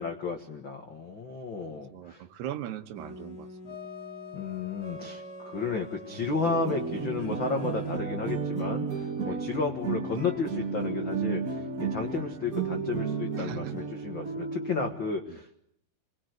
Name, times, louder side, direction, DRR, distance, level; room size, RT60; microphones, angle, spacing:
voice 1, 0.0-2.2 4.3-15.5, left 4 dB, 65° left, 4 dB, 1.2 m, -33 dB
voice 2, 1.6-3.8 9.2-9.5 12.1-12.2 13.4-13.7 15.3-15.4, right 10 dB, 75° right, 9 dB, 3.2 m, -40 dB
sound 1, 2.9-8.0, left 2 dB, 30° left, 2.7 m, -44 dB
sound 2, 6.4-14.9, right 5 dB, 40° right, 1.3 m, -33 dB
26.5 x 21.0 x 8.1 m, 0.71 s
omnidirectional pair, 4.9 m